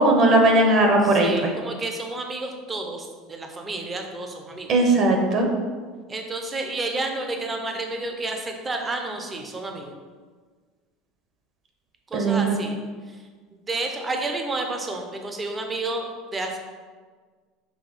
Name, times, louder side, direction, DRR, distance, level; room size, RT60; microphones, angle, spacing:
voice 1, 0.0-1.5 4.7-5.5 12.1-12.6, right 2 dB, 35° right, 2 dB, 0.9 m, -18 dB
voice 2, 1.0-4.7 6.1-9.9 12.1-12.8 13.1-13.2 13.7-16.1 16.3-16.6, right 2 dB, 15° right, 3 dB, 0.6 m, -30 dB
6.0 x 3.2 x 5.3 m, 1.5 s
cardioid pair, 160°, 0 cm